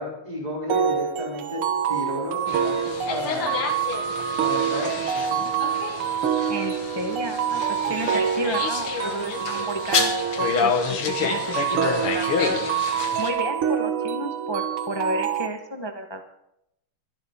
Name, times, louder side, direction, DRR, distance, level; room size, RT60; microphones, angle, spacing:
voice 1, 0.0-1.6 1.9-3.7 4.4-5.5 7.8-8.0, equal, 15° right, -2 dB, 3.4 m, -33 dB
sound 1, 0.7-15.5, right 7 dB, 80° right, 2.0 m, -26 dB
sound 2, 2.5-13.3, left 5 dB, 80° left, 2.4 m, -29 dB
voice 2, 6.5-7.6 7.9-10.1 10.4-12.6 13.2-16.3, equal, 30° left, 5 dB, 0.4 m, -32 dB
23.0 x 11.0 x 3.7 m, 0.81 s
omnidirectional pair, 2.4 m